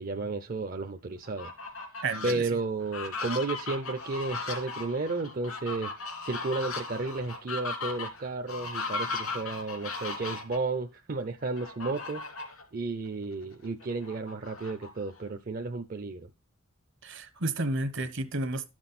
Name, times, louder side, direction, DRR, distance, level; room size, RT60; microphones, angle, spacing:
voice 1, 0.0-1.5 2.2-5.9 6.2-12.2 12.5-16.3, right 3 dB, 45° right, 0.6 m, -33 dB
Fowl, 1.2-2.3 2.8-10.6 11.6-12.6 13.1-13.2 13.5-15.3, left 3 dB, 80° left, 2.8 m, -37 dB
voice 2, 2.0-2.5 17.0-18.7, right 2 dB, 60° right, 1.1 m, -31 dB
11.5 x 6.2 x 4.2 m
head